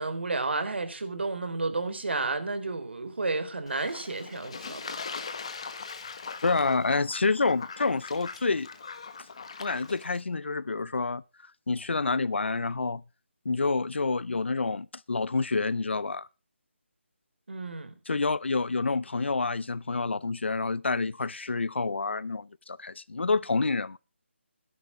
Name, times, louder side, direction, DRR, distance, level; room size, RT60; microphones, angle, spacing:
voice 1, 0.0-4.9 17.5-18.0, right 3 dB, 60° right, 3.8 m, -31 dB
Fowl / Bird / Water, 3.7-10.2, left 5 dB, 25° left, 1.3 m, -40 dB
voice 2, 6.4-8.7 9.3-11.2 11.7-13.0 13.4-16.3 18.1-24.0, left 3 dB, 65° left, 0.7 m, -28 dB
13.5 x 10.5 x 6.2 m
hypercardioid pair, 180°, 7 cm